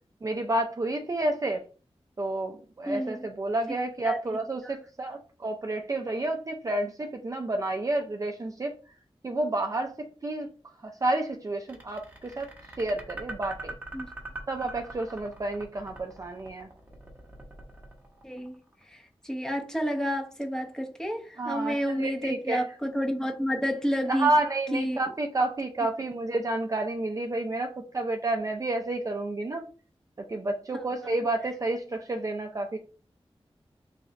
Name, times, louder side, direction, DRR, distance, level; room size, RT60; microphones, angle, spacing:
voice 1, 0.2-1.6 2.2-8.7 9.2-9.9 10.2-10.5 10.8-12.5 12.8-13.7 14.5-16.7 21.4-22.6 24.1-29.6 30.2-32.8, right 2 dB, 35° right, 0.4 m, -30 dB
voice 2, 2.9-3.3 4.0-4.2 4.6-4.8 13.9-14.1 18.2-18.6 18.9-24.3 24.7-25.0 30.7-30.8, equal, 5° left, 0.8 m, -30 dB
sound 1, 11.7-18.8, right 2 dB, 15° right, 1.0 m, -42 dB
3.2 x 2.4 x 3.9 m
wide cardioid pair, 80°, 10 cm